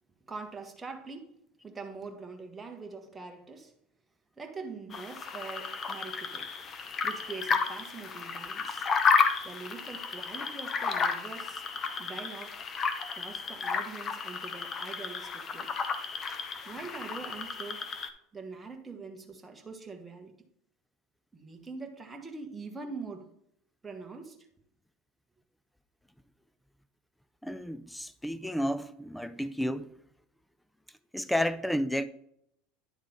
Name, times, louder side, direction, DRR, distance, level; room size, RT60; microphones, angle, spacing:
voice 1, 0.3-1.4 1.6-3.7 4.4-6.5 7.0-9.0 9.4-11.6 12.0-12.6 13.1-15.7 16.6-17.8 18.3-20.3 21.3-23.3 23.8-24.4, right 4 dB, 15° right, 1.2 m, -43 dB
sound 1, 4.9-18.1, left 5 dB, 30° left, 0.7 m, -32 dB
voice 2, 27.4-29.9 31.1-32.1, equal, 5° left, 0.4 m, -31 dB
10.0 x 3.7 x 4.3 m
supercardioid pair, 110°, 0 cm